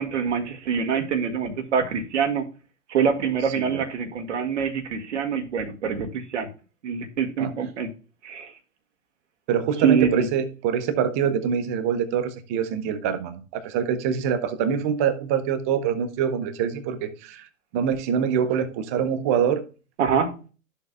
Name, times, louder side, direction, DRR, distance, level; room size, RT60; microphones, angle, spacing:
voice 1, 0.0-2.4 2.9-6.5 6.8-7.9 8.2-8.5 9.8-10.3 20.0-20.4, right 6 dB, 55° right, 1.6 m, -25 dB
voice 2, 9.5-17.5 17.7-19.6, right 8 dB, 10° right, 0.3 m, -25 dB
12.5 x 6.8 x 2.2 m
figure-of-eight pair, 115°, 42 cm